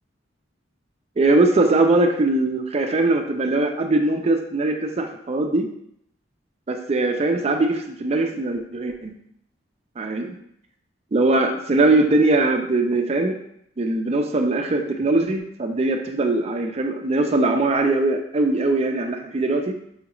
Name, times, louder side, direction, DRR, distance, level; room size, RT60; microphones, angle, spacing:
voice 1, 1.2-5.7 6.7-9.2 10.0-10.4 11.1-13.4 13.8-19.8, right 2 dB, 35° right, 4 dB, 0.4 m, -21 dB
5.6 x 2.4 x 3.0 m, 0.74 s
head